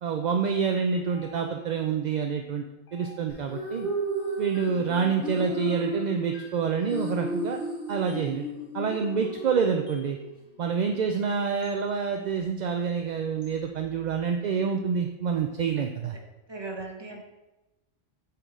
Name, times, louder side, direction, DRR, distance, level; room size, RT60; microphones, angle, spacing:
voice 1, 0.0-2.6 2.9-3.9 4.4-7.6 7.9-8.5 8.7-10.2 10.6-16.1, right 6 dB, 55° right, 4 dB, 0.5 m, -27 dB
sound 1, 1.1-1.8 2.9-3.6 4.5-5.0 6.3-6.8 8.1-8.4 9.9-10.1 11.6-11.8 13.4-13.6, left 3 dB, 75° left, 1.5 m, -52 dB
sound 2, 3.3-10.3, right 1 dB, 50° left, 2.3 m, -33 dB
voice 2, 16.5-17.2, right 3 dB, 25° right, 0 dB, 1.1 m, -38 dB
8.1 x 4.6 x 3.7 m, 1.0 s
omnidirectional pair, 1.1 m